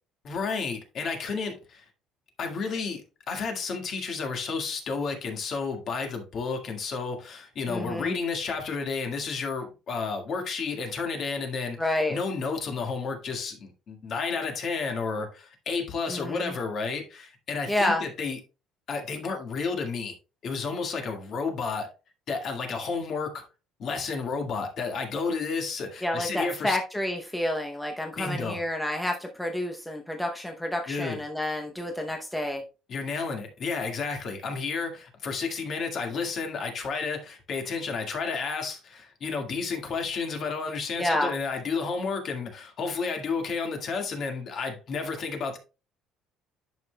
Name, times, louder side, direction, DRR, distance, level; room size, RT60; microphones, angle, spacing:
voice 1, 0.2-1.8 2.4-3.0 3.3-18.4 18.9-20.1 20.4-21.9 22.3-23.4 23.8-26.8 28.2-28.6 30.9-31.2 32.9-45.6, left 4 dB, 40° left, 1.8 m, -31 dB
voice 2, 7.7-8.2 11.8-12.2 16.1-16.5 17.7-18.0 26.0-32.6 41.0-41.3, left 1 dB, 5° left, 0.7 m, -29 dB
10.5 x 5.7 x 2.2 m
cardioid pair, 155°, 0 cm